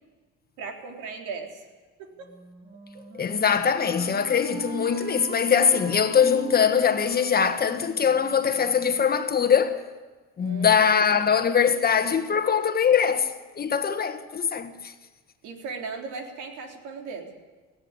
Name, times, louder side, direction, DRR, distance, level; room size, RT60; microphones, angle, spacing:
voice 1, 0.6-1.6 2.0-2.3 2.9-3.0 10.4-10.9 11.1-11.4 15.4-17.3, right 4 dB, 85° right, 3.6 m, -37 dB
Wind instrument woodwind instrument, 2.2-9.0, right 3 dB, 45° right, 4.7 m, -42 dB
voice 2, 3.2-9.8 10.4-14.9, left 7 dB, 30° left, 1.5 m, -22 dB
17.5 x 16.0 x 9.8 m
cardioid pair, 120°, 30 cm